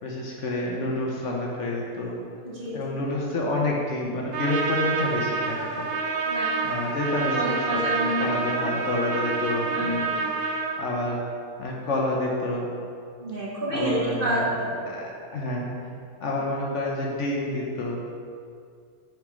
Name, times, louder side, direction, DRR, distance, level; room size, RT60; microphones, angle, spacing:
voice 1, 0.0-2.1 2.7-5.9 6.6-10.0 10.8-11.2 11.6-12.7 13.7-15.7 16.2-18.0, left 2 dB, 60° left, -2 dB, 1.0 m, -28 dB
voice 2, 2.4-2.8 6.2-6.5 7.2-8.4 9.7-10.3 13.2-14.7, right 1 dB, 40° right, -6 dB, 1.1 m, -29 dB
Trumpet, 4.3-10.8, right 4 dB, 60° right, 0.6 m, -28 dB
5.9 x 3.4 x 5.0 m, 2.3 s
omnidirectional pair, 1.5 m